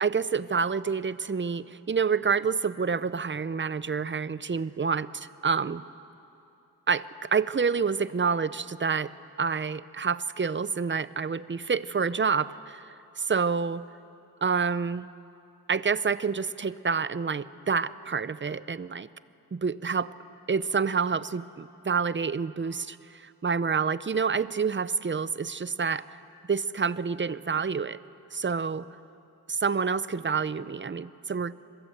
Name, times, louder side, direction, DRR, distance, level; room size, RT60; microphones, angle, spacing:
voice 1, 0.0-5.8 6.9-9.1 9.4-12.8 13.2-13.8 14.4-15.1 15.7-19.1 19.5-20.1 20.5-26.0 26.5-28.0 28.3-28.8 29.5-31.5, right 5 dB, 30° right, 16 dB, 0.6 m, -28 dB
27.5 x 22.5 x 7.9 m, 2.7 s
wide cardioid pair, 80°, 39 cm